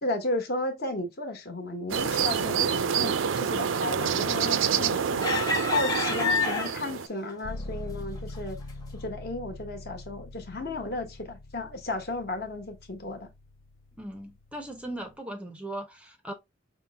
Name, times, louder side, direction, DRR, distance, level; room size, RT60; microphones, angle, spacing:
voice 1, 0.0-8.6 8.9-13.3, left 2 dB, 50° left, 1.1 m, -34 dB
sound 1, 1.9-7.1, right 7 dB, 75° right, 0.4 m, -27 dB
sound 2, 4.4-4.8 5.2-7.0 7.6-7.7 8.2-8.4, left 3 dB, 20° left, 0.9 m, -28 dB
sound 3, 7.4-15.2, left 2 dB, 85° left, 0.6 m, -43 dB
voice 2, 14.0-16.3, right 1 dB, 5° right, 0.5 m, -38 dB
5.6 x 2.1 x 3.4 m
head